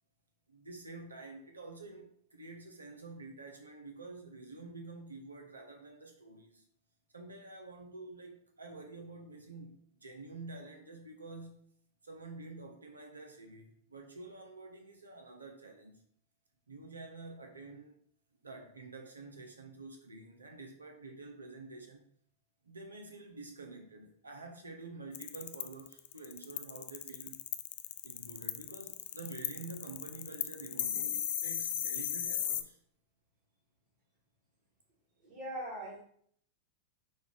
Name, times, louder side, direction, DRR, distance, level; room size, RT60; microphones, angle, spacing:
voice 1, 0.5-6.7 7.1-11.7 12.0-16.0 16.7-18.0 18.4-22.0 22.6-27.3 28.0-32.8, right 3 dB, 90° right, 0.6 m, -48 dB
sound 1, 25.1-32.6, left 11 dB, 60° left, 0.3 m, -35 dB
voice 2, 30.7-31.1 35.2-36.0, right 1 dB, 55° right, 1.8 m, -42 dB
5.2 x 2.3 x 3.7 m
hypercardioid pair, 95°, 0 cm